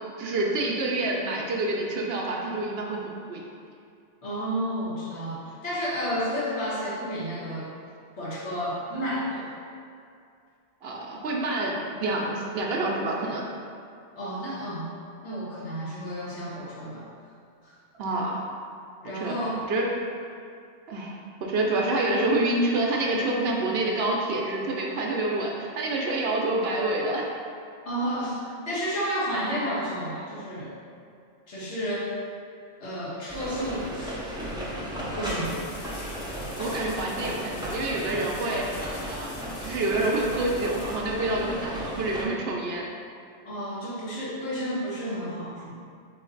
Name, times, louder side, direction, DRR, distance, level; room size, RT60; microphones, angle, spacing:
voice 1, 0.2-3.4 10.8-13.5 18.0-18.4 19.1-19.9 20.9-27.3 36.6-38.7 39.0-39.3 39.6-42.8, right 2 dB, 65° right, -1 dB, 0.8 m, -27 dB
voice 2, 4.2-7.7 8.2-9.5 14.1-14.9 15.2-17.0 17.6-17.7 19.0-19.6 27.8-30.7 31.5-32.1 32.8-34.2 35.2-35.6 43.4-45.8, equal, 75° left, -8 dB, 1.4 m, -31 dB
sound 1, 33.3-42.2, equal, 5° right, 0.4 m, -35 dB
sound 2, 35.2-41.8 44.7-44.8, left 3 dB, 55° left, 0.5 m, -47 dB
4.1 x 3.1 x 3.8 m, 2.4 s
omnidirectional pair, 1.2 m